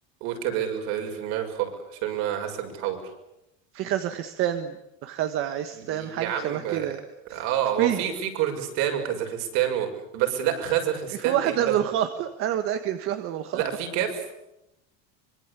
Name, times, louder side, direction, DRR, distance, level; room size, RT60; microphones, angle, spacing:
voice 1, 0.2-3.0 5.7-6.9 7.3-11.7 13.5-14.2, right 10 dB, 55° right, 4 dB, 6.5 m, -28 dB
voice 2, 3.7-7.0 7.3-7.4 7.8-8.0 11.2-13.6, right 11 dB, 40° right, 8 dB, 1.5 m, -28 dB
25.0 x 24.0 x 8.4 m, 0.88 s
cardioid pair, 175°, 33 cm